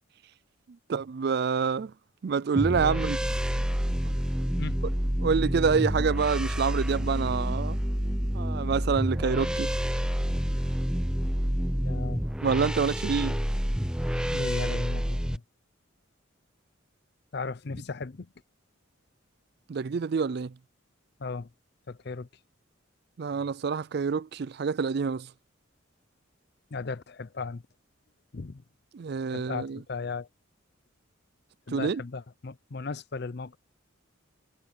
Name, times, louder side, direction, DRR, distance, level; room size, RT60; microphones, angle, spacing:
voice 1, 0.9-1.9 2.2-3.2 5.2-7.8 8.3-9.7 12.4-13.4 19.7-20.5 23.2-25.3 28.9-29.8 31.7-32.0, right 5 dB, 55° right, 0.4 m, -27 dB
sound 1, 2.5-15.4, equal, 5° right, 0.8 m, -28 dB
voice 2, 11.8-12.2 14.3-15.4 17.3-18.3 21.2-21.5 21.9-22.3 26.7-27.6 28.3-28.6 29.3-30.3 31.7-33.6, left 4 dB, 55° left, 0.6 m, -36 dB
head